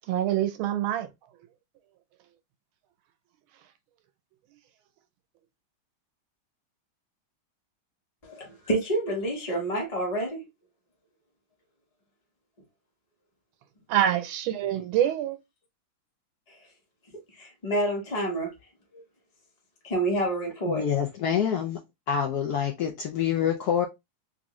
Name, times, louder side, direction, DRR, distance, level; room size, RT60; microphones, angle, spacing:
voice 1, 0.1-1.1 13.9-15.4, right 11 dB, 85° right, 1.4 m, -25 dB
voice 2, 8.2-10.4 14.8-14.9 17.4-18.5 18.9-19.0 19.8-20.8, right 1 dB, 25° left, 0.9 m, -28 dB
voice 3, 20.6-21.8 22.1-23.9, left 8 dB, 75° left, 0.9 m, -26 dB
3.6 x 2.5 x 2.9 m
omnidirectional pair, 2.2 m